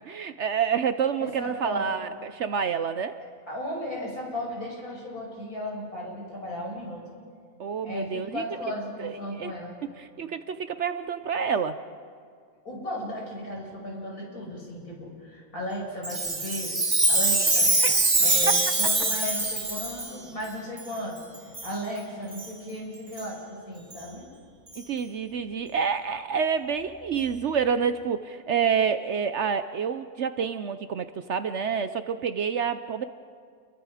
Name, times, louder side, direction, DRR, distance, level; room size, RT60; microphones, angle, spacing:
voice 1, 0.0-3.2 7.6-8.4 9.0-9.5 9.9-11.8 17.8-18.0 24.8-33.0, right 6 dB, 60° right, 11 dB, 0.9 m, -28 dB
voice 2, 1.2-1.9 3.5-7.0 7.8-9.8 12.6-16.7 17.1-17.7 18.2-24.2, left 1 dB, 75° left, -3 dB, 6.5 m, -35 dB
Chime, 16.0-20.1 20.8-20.9 21.5-21.7 22.3-22.5 23.2-23.3 23.9-24.0 24.7-24.8, right 2 dB, 20° right, 1.5 m, -24 dB
29.0 x 22.5 x 4.9 m, 2.1 s
omnidirectional pair, 1.6 m